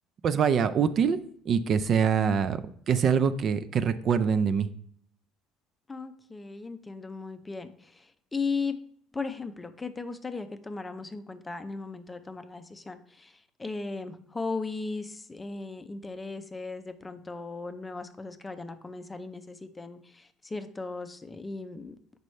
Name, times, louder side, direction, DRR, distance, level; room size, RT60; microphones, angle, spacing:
voice 1, 0.2-1.2 1.5-2.6 2.9-4.7, right 7 dB, 40° right, 11 dB, 0.4 m, -24 dB
voice 2, 5.9-8.8 9.1-22.0, left 4 dB, 15° left, 9 dB, 0.5 m, -37 dB
7.8 x 5.3 x 3.2 m, 0.64 s
cardioid pair, 135°, 0 cm